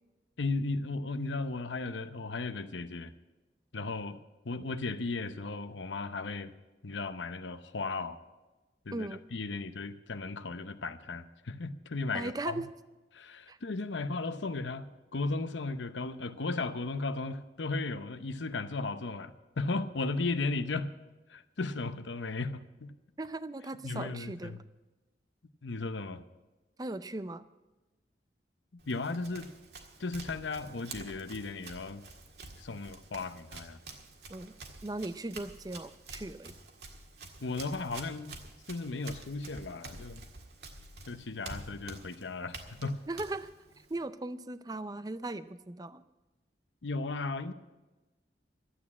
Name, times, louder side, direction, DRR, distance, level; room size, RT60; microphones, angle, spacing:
voice 1, 0.4-3.1 3.7-4.2 4.4-6.5 6.8-8.2 8.9-12.6 13.1-14.9 15.1-20.9 21.3-22.9 23.8-24.6 25.6-26.2 28.7-29.5 30.0-32.0 32.6-33.8 37.4-38.4 38.7-40.2 41.1-43.0 46.8-47.5, left 3 dB, 90° left, 11 dB, 0.8 m, -35 dB
voice 2, 12.1-12.7 13.5-13.6 23.2-24.6 26.8-27.4 34.3-34.5 34.8-36.5 43.1-43.5 43.9-46.0, right 2 dB, 20° right, 13 dB, 0.5 m, -38 dB
Run, 28.8-44.1, right 3 dB, 65° right, 1.7 m, -49 dB
13.0 x 8.7 x 8.5 m, 1.1 s
head